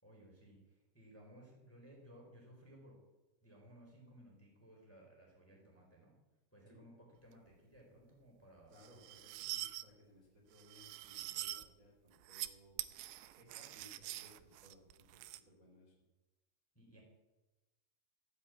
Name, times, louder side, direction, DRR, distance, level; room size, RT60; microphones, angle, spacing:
voice 1, 0.0-3.0 3.4-6.2 6.5-8.8 16.7-17.0, equal, 5° left, -1 dB, 3.2 m, -60 dB
voice 2, 8.7-12.8 13.3-15.9, left 1 dB, 20° right, -4 dB, 2.8 m, -63 dB
sound 1, 8.8-9.8 10.6-11.7 12.1-12.5 12.8-15.4, right 16 dB, 85° right, 3.2 m, -45 dB
15.5 x 8.5 x 8.5 m, 1.1 s
omnidirectional pair, 5.8 m